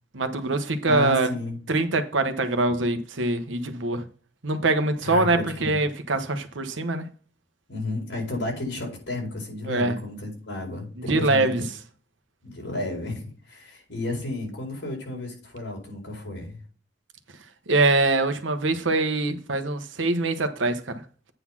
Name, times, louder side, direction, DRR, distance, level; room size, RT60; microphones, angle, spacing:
voice 1, 0.1-1.3 1.7-4.0 4.4-7.1 9.6-10.0 11.1-11.6 17.7-21.0, right 2 dB, 85° right, 1.0 m, -24 dB
voice 2, 0.9-1.6 5.0-5.8 7.7-11.7 12.4-16.6, left 2 dB, 75° left, 4.6 m, -32 dB
8.9 x 4.0 x 5.9 m
head